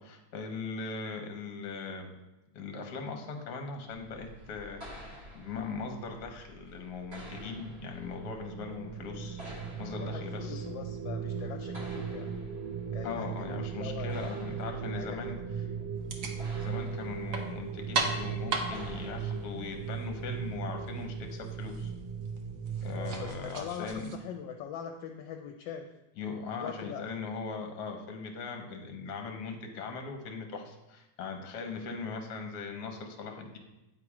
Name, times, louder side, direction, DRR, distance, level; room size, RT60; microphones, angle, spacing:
voice 1, 0.0-2.2 2.5-9.4 9.8-10.7 13.0-15.4 16.2-21.9 22.8-24.1 26.2-33.6, left 4 dB, 65° left, 4 dB, 1.4 m, -40 dB
sound 1, 3.9-20.1, equal, 40° right, 1.2 m, -51 dB
sound 2, 7.2-23.3, right 6 dB, 85° right, 1.4 m, -38 dB
voice 2, 10.0-12.3 12.9-14.6 14.9-15.9 22.9-25.9 26.5-27.0, left 8 dB, 80° left, 4 dB, 1.3 m, -42 dB
sound 3, 15.9-24.2, right 3 dB, 60° right, 0.9 m, -39 dB
8.4 x 3.0 x 4.8 m, 0.98 s
omnidirectional pair, 2.0 m